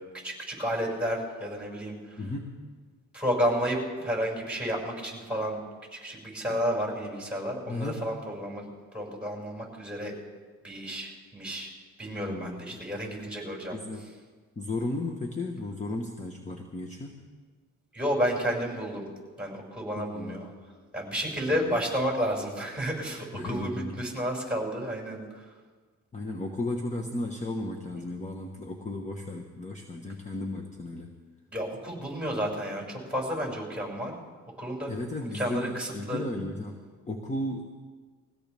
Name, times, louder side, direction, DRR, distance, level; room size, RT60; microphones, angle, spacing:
voice 1, 0.0-2.2 3.1-5.6 5.9-8.7 8.9-10.1 10.6-11.7 12.0-13.8 17.9-19.1 19.4-20.5 20.9-25.4 31.5-34.1 34.6-34.9 35.3-36.2, equal, 5° right, -2 dB, 6.3 m, -31 dB
voice 2, 2.2-2.7 6.5-6.6 7.7-8.1 12.2-12.7 13.7-14.1 14.5-17.2 20.0-20.5 21.5-21.8 23.3-24.0 26.1-31.1 34.9-37.6, left 2 dB, 25° left, 2 dB, 1.4 m, -35 dB
22.0 x 16.5 x 3.6 m, 1.5 s
cardioid pair, 90°, 30 cm